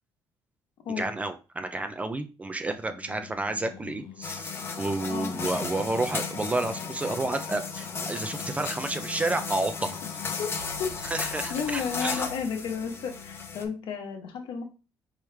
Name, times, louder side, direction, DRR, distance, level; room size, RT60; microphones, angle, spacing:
voice 1, 1.0-10.2 11.1-12.3, right 2 dB, 15° right, 8 dB, 0.4 m, -31 dB
Singing, 2.7-13.8, left 11 dB, 80° left, 0.4 m, -45 dB
sound 1, 4.2-13.6, left 5 dB, 30° left, 0.7 m, -35 dB
voice 2, 5.1-5.6 10.2-10.9 11.2-14.6, left 6 dB, 65° left, 3 dB, 1.2 m, -33 dB
sound 2, 10.6-13.6, left 1 dB, 50° right, 1.7 m, -49 dB
4.9 x 3.1 x 3.3 m, 0.31 s
cardioid pair, 155°, 9 cm